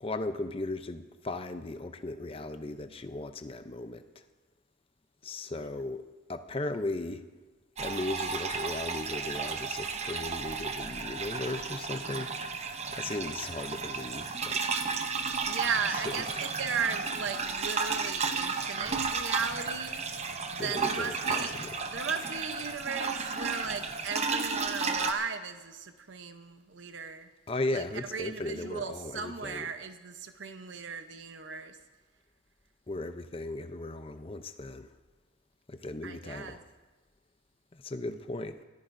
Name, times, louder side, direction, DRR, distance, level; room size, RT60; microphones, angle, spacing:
voice 1, 0.0-4.2 5.2-7.2 7.8-12.3 12.9-14.6 16.3-16.5 20.6-21.8 27.5-29.7 32.9-34.9 35.7-36.6 37.7-38.6, left 2 dB, 30° left, 9 dB, 0.6 m, -37 dB
sound 1, 7.8-25.1, right 5 dB, 35° right, 0.8 m, -33 dB
voice 2, 15.4-20.1 20.5-21.6 21.8-27.3 27.7-31.8 36.0-36.6, right 5 dB, 85° right, 8 dB, 0.8 m, -36 dB
23.0 x 14.5 x 2.7 m, 1.3 s
head